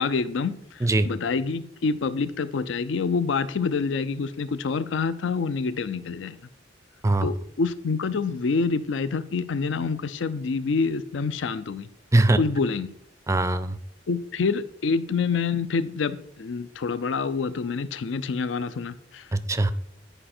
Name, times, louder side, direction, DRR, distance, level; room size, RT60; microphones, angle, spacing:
voice 1, 0.0-6.4 7.2-11.9 12.4-12.9 14.1-19.4, left 4 dB, 80° left, 14 dB, 0.5 m, -27 dB
voice 2, 13.3-13.8 19.3-19.7, right 2 dB, 15° right, 14 dB, 0.4 m, -21 dB
10.0 x 4.9 x 4.3 m, 0.70 s
head